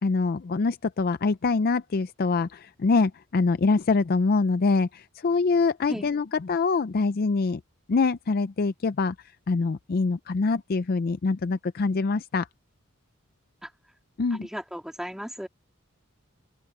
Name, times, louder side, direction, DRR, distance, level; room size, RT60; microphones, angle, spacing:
voice 1, 0.0-7.6 7.9-9.1 9.5-12.5 14.2-14.5, left 4 dB, 45° left, 0.4 m, -24 dB
voice 2, 14.3-15.5, equal, ahead, 2.1 m, -36 dB
open air
head